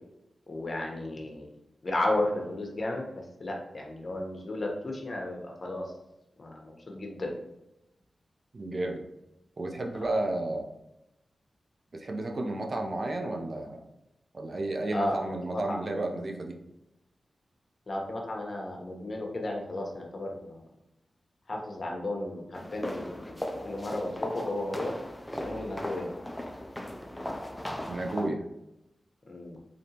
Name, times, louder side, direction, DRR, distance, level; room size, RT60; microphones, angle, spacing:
voice 1, 0.5-1.5 1.8-3.1 3.4-5.9 6.4-7.3 9.9-10.0 14.9-15.8 17.9-20.6 21.5-22.4 22.7-23.4 23.6-24.9 25.4-26.1 29.3-29.6, left 1 dB, 50° left, 1 dB, 1.0 m, -33 dB
voice 2, 8.5-9.0 9.6-10.7 11.9-13.8 14.3-16.6 27.9-28.4, right 2 dB, 55° right, 3 dB, 0.6 m, -32 dB
sound 1, 22.5-28.3, left 1 dB, 10° left, 0.4 m, -37 dB
3.7 x 3.5 x 2.9 m, 0.87 s
cardioid pair, 60°, 0 cm